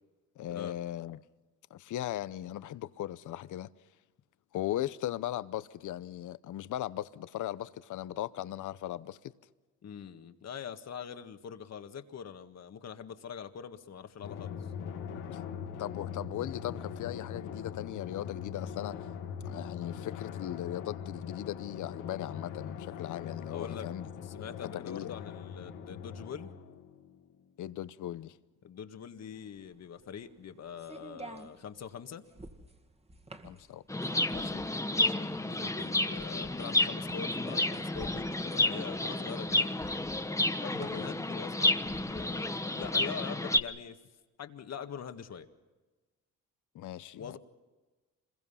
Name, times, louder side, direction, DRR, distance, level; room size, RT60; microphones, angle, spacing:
voice 1, 0.4-1.2 1.7-3.7 4.5-9.2 14.2-14.3 15.8-19.0 19.4-24.1 24.7-25.1 27.6-28.4 33.4-33.8 34.3-34.6 40.9-41.0 46.7-47.4, left 13 dB, 70° left, 0.9 m, -38 dB
voice 2, 9.8-14.6 23.5-23.9 24.2-26.5 28.6-32.2 34.9-39.7 40.6-44.0 44.4-45.5 47.1-47.4, left 7 dB, 55° left, 1.8 m, -43 dB
Drum, 14.2-27.3, left 7 dB, 90° left, 2.1 m, -42 dB
sound 1, 29.4-43.3, right 2 dB, 20° right, 2.2 m, -51 dB
Chirp tweet, 33.9-43.6, left 2 dB, 10° left, 1.1 m, -31 dB
26.5 x 22.0 x 5.7 m
cardioid pair, 85°, 31 cm